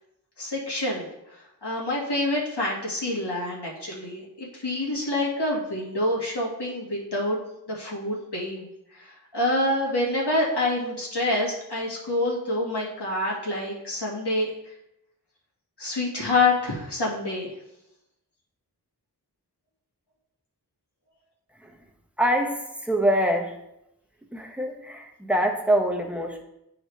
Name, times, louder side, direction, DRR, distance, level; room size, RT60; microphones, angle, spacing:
voice 1, 0.4-7.4 7.7-8.7 8.9-14.5 15.8-17.5, left 2 dB, 85° left, -4 dB, 1.8 m, -27 dB
voice 2, 22.2-23.6 24.3-26.4, equal, 5° right, 2 dB, 1.0 m, -24 dB
9.7 x 3.9 x 3.2 m, 0.83 s
wide cardioid pair, 45°, 39 cm